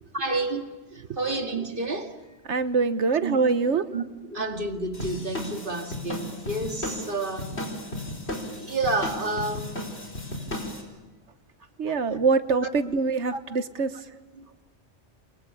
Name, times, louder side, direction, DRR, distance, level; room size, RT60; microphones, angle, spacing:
voice 1, 0.1-0.6 0.9-2.1 3.2-3.4 3.7-4.0 4.3-7.5 8.5-9.8 13.3-13.4, right 2 dB, 50° right, 2.5 m, -30 dB
voice 2, 2.5-3.9 11.8-14.0, right 4 dB, 90° right, 1.5 m, -24 dB
sound 1, 4.9-10.8, left 1 dB, 70° left, 5.0 m, -35 dB
28.5 x 23.5 x 8.8 m
omnidirectional pair, 1.1 m